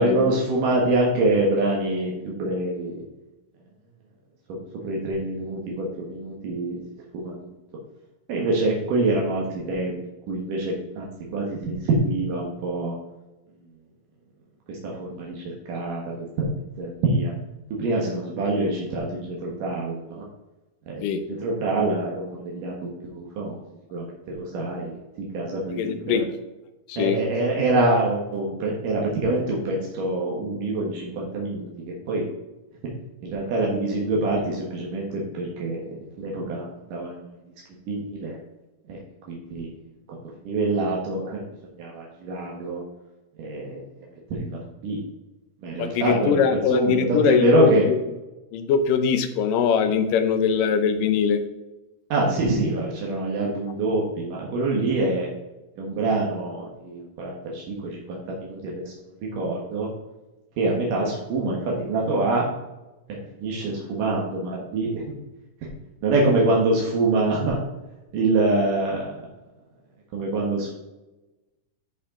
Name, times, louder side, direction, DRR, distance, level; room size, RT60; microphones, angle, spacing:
voice 1, 0.0-2.1 2.4-3.0 4.8-6.8 7.1-7.5 8.3-10.0 10.3-11.1 11.3-12.9 14.7-16.5 16.8-17.3 17.8-20.2 20.9-21.1 21.4-23.6 23.9-26.2 27.0-32.2 33.2-35.9 36.2-37.1 37.9-38.4 38.9-39.0 39.3-39.7 40.4-41.4 41.8-42.8 43.4-43.8 44.3-45.0 45.6-47.9 52.1-55.3 55.8-58.9 59.4-59.9 60.6-62.5 63.1-65.2 66.0-67.6 68.1-69.2 70.1-70.7, right 2 dB, 75° right, -3 dB, 3.0 m, -25 dB
voice 2, 25.7-26.3 26.9-27.2 45.8-48.0 48.5-51.4, left 7 dB, 85° left, 8 dB, 2.5 m, -22 dB
11.0 x 5.5 x 3.7 m, 1.0 s
omnidirectional pair, 3.8 m